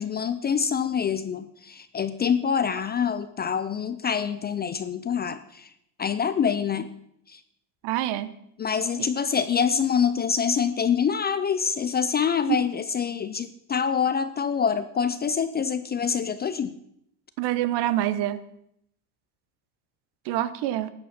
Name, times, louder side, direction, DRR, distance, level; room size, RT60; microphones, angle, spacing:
voice 1, 0.0-5.7 6.0-6.9 7.3-7.4 8.6-16.8, left 7 dB, 20° left, 12 dB, 0.5 m, -26 dB
voice 2, 7.8-8.3 17.4-18.4 20.2-20.9, right 13 dB, 55° right, 15 dB, 1.1 m, -26 dB
13.0 x 8.9 x 5.9 m, 0.75 s
supercardioid pair, 110°, 49 cm